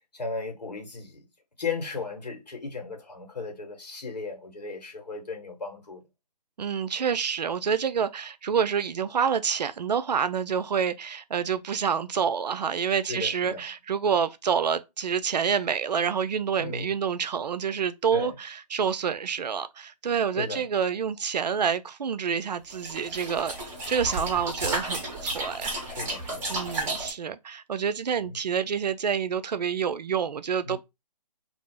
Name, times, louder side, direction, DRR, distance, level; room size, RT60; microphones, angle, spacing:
voice 1, 0.1-1.2 1.6-6.0 13.1-13.6 16.6-16.9 18.1-18.3 20.4-20.6 25.8-26.5 28.2-28.4 30.7-30.8, left 4 dB, 80° left, 1.3 m, -35 dB
voice 2, 6.6-25.7 26.5-30.8, right 7 dB, 80° right, 0.4 m, -28 dB
sound 1, 22.7-27.1, right 1 dB, 10° right, 0.6 m, -32 dB
2.4 x 2.0 x 3.6 m
figure-of-eight pair, 150°, 21 cm